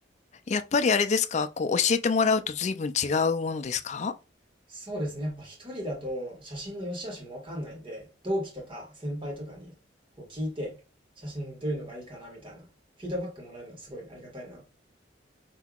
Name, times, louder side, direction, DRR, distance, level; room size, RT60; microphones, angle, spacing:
voice 1, 0.5-4.1, left 5 dB, 40° left, 0.4 m, -25 dB
voice 2, 4.7-9.8 10.2-10.8 11.2-12.7 13.0-14.7, equal, 30° right, 1.6 m, -36 dB
5.5 x 2.8 x 2.3 m
head